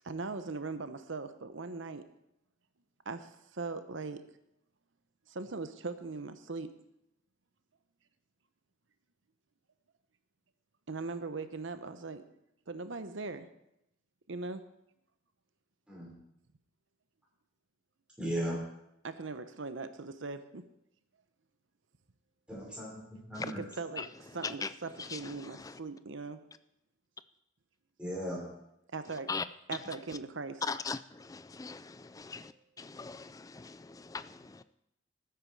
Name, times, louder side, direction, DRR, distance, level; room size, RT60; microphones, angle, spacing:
voice 1, 0.0-2.0 3.1-4.2 5.3-6.7 10.9-12.2 12.7-13.5 14.3-14.6 19.0-20.6 23.4-24.1 24.3-26.4 28.9-29.3 29.7-30.6, right 3 dB, 75° right, 0.9 m, -40 dB
voice 2, 18.2-18.6 22.5-23.0 23.3-23.6 28.0-28.4, equal, 5° right, 5.2 m, -36 dB
voice 3, 25.0-25.8 29.3-29.5 30.6-32.5 32.8-34.6, left 4 dB, 15° left, 0.3 m, -40 dB
13.5 x 9.6 x 4.7 m
head